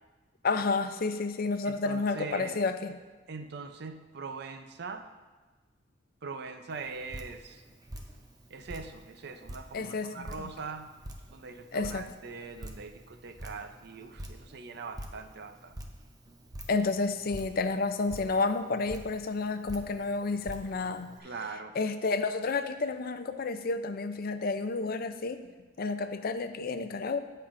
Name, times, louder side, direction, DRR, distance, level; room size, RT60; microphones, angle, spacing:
voice 1, 0.4-3.0 9.7-10.5 11.7-12.1 16.7-21.1 21.8-25.4 25.8-27.2, left 3 dB, 55° left, 9 dB, 0.5 m, -30 dB
voice 2, 1.6-2.6 3.3-5.1 6.2-7.6 8.5-10.9 11.3-15.8 21.2-21.7, right 4 dB, 60° right, 8 dB, 0.5 m, -42 dB
Drip, 6.7-21.2, equal, 20° right, 0.7 m, -47 dB
15.5 x 5.6 x 2.6 m, 1.3 s
head